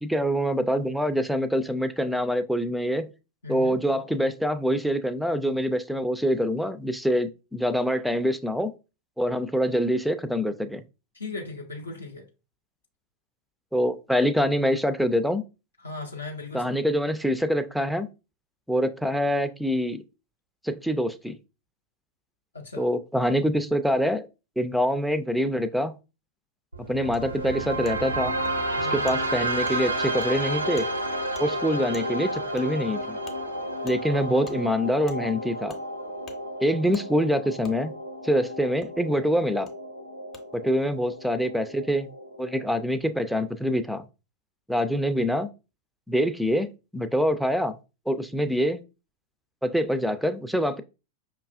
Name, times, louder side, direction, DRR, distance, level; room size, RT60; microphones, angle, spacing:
voice 1, 0.0-3.1 3.5-8.7 9.2-10.8 13.7-15.4 16.5-18.1 18.7-20.0 20.6-21.4 22.8-24.3 24.6-26.0 26.9-28.4 28.8-30.9 31.4-33.2 33.8-35.7 36.6-37.9 38.2-39.7 40.5-42.1 42.4-44.0 44.7-45.5 46.1-47.7 48.1-48.8 49.6-50.8, equal, ahead, 0.4 m, -25 dB
voice 2, 3.4-3.9 11.1-12.3 15.8-16.8 22.5-22.9 28.8-29.1, left 3 dB, 75° left, 0.6 m, -37 dB
sound 1, 26.7-42.7, right 1 dB, 85° right, 0.5 m, -32 dB
Wood, 27.1-27.2 27.8-28.0 28.4-28.6 29.1-29.2 29.7-29.8 30.2-30.3 30.8-30.9 31.3-31.5 31.9-32.1 32.6-32.7 33.3-33.4 33.9-34.0 34.4-34.6 35.1-35.2 35.7-35.8 36.3-36.4 36.9-37.1 37.6-37.8 38.8-38.9 39.7-39.8 40.3-40.4, left 5 dB, 30° left, 0.7 m, -46 dB
5.2 x 2.3 x 2.5 m
figure-of-eight pair, 90°, 0 cm